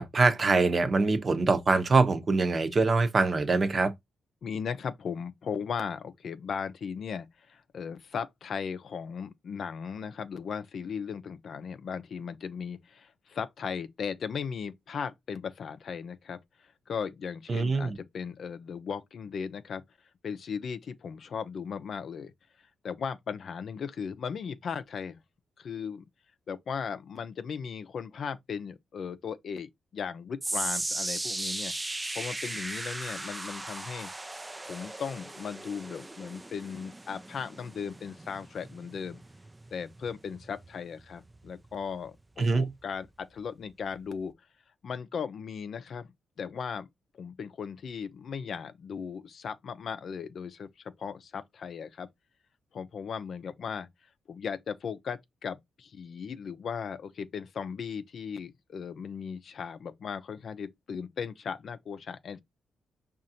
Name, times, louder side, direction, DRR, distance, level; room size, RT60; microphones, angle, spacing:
voice 1, 0.0-3.9 17.5-18.0 42.4-42.7, right 3 dB, 40° right, 0.7 m, -24 dB
voice 2, 4.4-16.4 16.9-19.8 20.2-22.3 22.8-25.2 25.6-26.0 26.5-31.7 32.1-34.1 34.7-39.2 39.7-44.3 44.8-46.9 47.1-52.1 52.7-53.9 54.3-62.4, left 6 dB, 60° left, 0.5 m, -37 dB
sound 1, 30.4-42.7 43.0-43.4 44.0-44.1, right 2 dB, 15° right, 0.3 m, -38 dB
5.0 x 2.5 x 2.8 m
cardioid pair, 90°, 0 cm